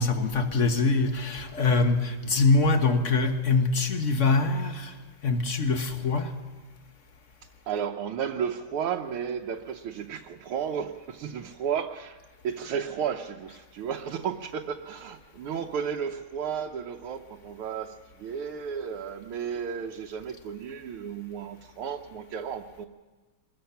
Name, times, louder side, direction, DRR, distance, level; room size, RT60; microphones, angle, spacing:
voice 1, 0.0-4.9 5.2-6.3, left 3 dB, 40° left, 1.5 m, -24 dB
voice 2, 7.7-12.2 12.4-17.9 18.2-22.9, right 7 dB, 80° right, 1.7 m, -33 dB
24.5 x 21.0 x 5.8 m
omnidirectional pair, 2.4 m